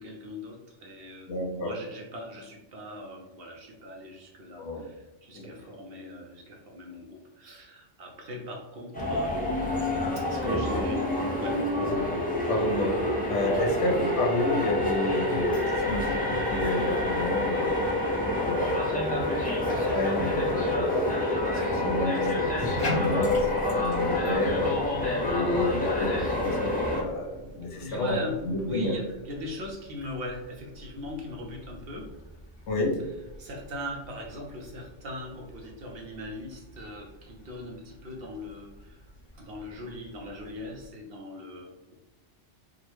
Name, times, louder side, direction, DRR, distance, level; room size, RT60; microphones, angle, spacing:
voice 1, 0.0-9.5 10.2-11.1 11.4-11.6 12.4-12.6 13.4-13.7 27.8-32.1 33.4-39.0 39.4-41.9, left 1 dB, 60° right, 1 dB, 0.8 m, -40 dB
voice 2, 1.3-1.7 4.6-4.9 5.3-5.5 10.4-10.6 11.8-12.1 12.5-13.0 13.3-17.8 18.4-23.4 23.7-24.8 25.2-28.2 28.4-28.9 32.7-33.0, left 1 dB, 75° left, 1 dB, 0.9 m, -30 dB
sound 1, 8.9-27.0, left 2 dB, 10° left, 0.5 m, -27 dB
Bathtub (filling or washing), 22.5-40.9, equal, 35° left, 0.8 m, -43 dB
3.7 x 2.0 x 3.0 m, 1.0 s
omnidirectional pair, 1.2 m